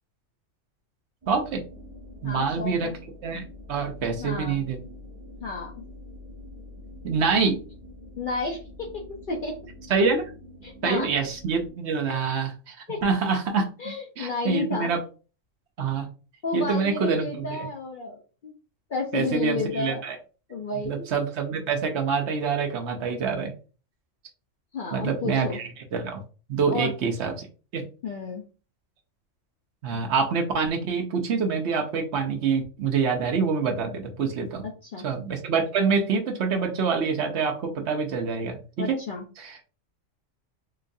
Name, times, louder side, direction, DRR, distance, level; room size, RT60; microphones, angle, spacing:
sound 1, 1.2-11.7, left 2 dB, 25° right, 0.8 m, -45 dB
voice 1, 1.3-1.6 2.2-2.9 3.2-4.8 7.0-7.6 9.9-10.2 10.8-12.8 13.0-13.7 14.2-15.0 15.8-16.1 16.5-17.7 19.1-20.2 20.8-23.5 24.9-26.2 26.5-27.5 27.7-27.8 29.8-34.6 35.0-39.0 39.4-39.6, right 5 dB, 65° right, 3 dB, 0.9 m, -26 dB
voice 2, 2.2-2.9 4.2-4.7 5.4-5.8 8.2-8.9 9.3-9.5 10.6-11.1 12.1-12.2 12.9-13.0 13.8-14.9 16.4-18.5 18.9-20.1 20.5-21.0 24.7-25.6 26.7-27.1 28.0-28.4 34.6-35.1 38.8-39.3, left 4 dB, 60° left, 0 dB, 0.6 m, -32 dB
3.8 x 2.4 x 2.6 m, 0.36 s
omnidirectional pair, 1.3 m